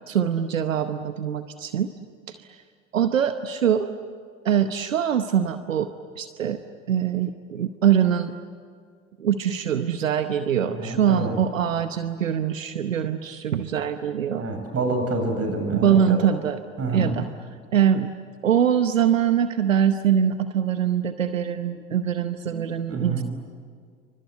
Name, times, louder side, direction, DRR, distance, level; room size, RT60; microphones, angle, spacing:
voice 1, 0.1-1.9 2.3-2.6 2.9-3.9 4.4-5.9 6.2-6.6 6.9-8.4 9.2-14.4 15.7-16.6 16.9-17.3 17.7-18.1 18.4-23.2, right 9 dB, 85° right, 10 dB, 0.9 m, -23 dB
voice 2, 10.7-11.4 14.4-16.2 16.8-17.2 22.9-23.2, right 3 dB, 40° right, 5 dB, 7.7 m, -27 dB
28.5 x 25.0 x 8.1 m, 2.1 s
figure-of-eight pair, 60°, 38 cm